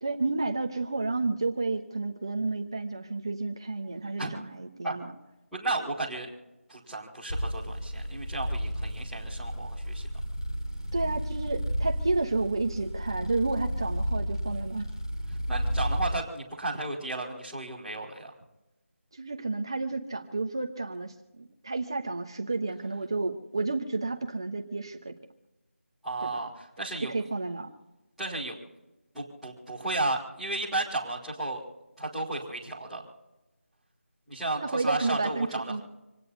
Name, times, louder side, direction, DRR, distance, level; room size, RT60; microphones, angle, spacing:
voice 1, 0.0-5.1 10.9-14.9 19.1-25.1 26.2-26.3 27.1-27.7 34.6-35.8, right 3 dB, 20° right, 5 dB, 1.1 m, -31 dB
voice 2, 5.5-6.3 6.7-10.1 15.5-18.3 26.0-27.1 28.2-28.6 29.1-31.6 32.0-33.0 34.3-35.8, right 2 dB, ahead, -14 dB, 1.8 m, -33 dB
sound 1, 7.3-16.2, equal, 20° left, 1.8 m, -32 dB
27.5 x 9.8 x 4.0 m, 1.0 s
figure-of-eight pair, 180°, 7 cm